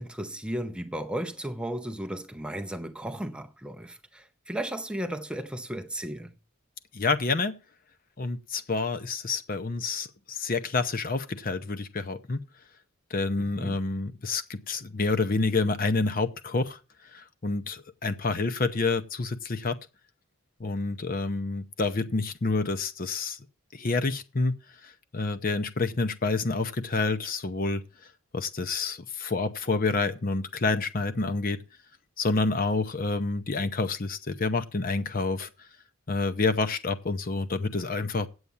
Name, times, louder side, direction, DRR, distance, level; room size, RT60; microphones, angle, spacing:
voice 1, 0.0-6.3 13.5-13.8, right 1 dB, 5° right, 0.6 m, -35 dB
voice 2, 6.9-7.6 8.2-12.4 13.1-16.8 17.1-19.8 20.6-23.4 23.7-24.5 24.8-27.8 28.3-31.6 32.2-35.5 36.1-38.3, left 3 dB, 40° left, 0.7 m, -28 dB
8.4 x 8.0 x 7.0 m
head